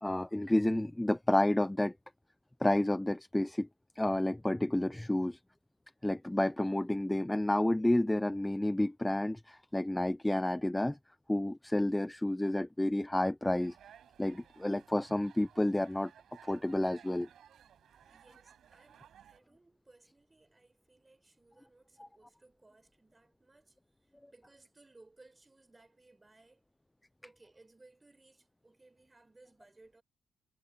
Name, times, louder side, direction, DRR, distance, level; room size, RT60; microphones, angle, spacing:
voice 1, 0.0-1.9 2.6-3.7 4.0-5.4 6.0-11.0 11.3-13.8 14.2-16.1 16.4-17.3 22.0-22.1, left 1 dB, 10° left, 0.4 m, -30 dB
sound 1, 13.5-19.4, right 9 dB, 65° right, 7.9 m, -59 dB
voice 2, 18.1-26.6 27.2-30.0, right 2 dB, 20° right, 4.6 m, -62 dB
cardioid pair, 90°, 0 cm